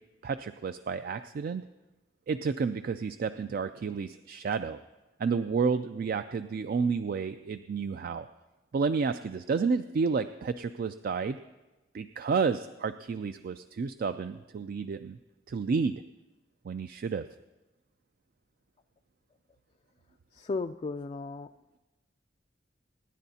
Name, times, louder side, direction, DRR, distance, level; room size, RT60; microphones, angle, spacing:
voice 1, 0.2-1.6 2.3-4.8 5.2-8.3 8.7-11.4 11.9-15.2 15.5-16.0 16.6-17.3, right 5 dB, 55° right, 10 dB, 0.3 m, -30 dB
voice 2, 20.3-21.5, left 3 dB, 35° left, 7 dB, 0.3 m, -35 dB
25.5 x 10.5 x 2.8 m, 1.1 s
head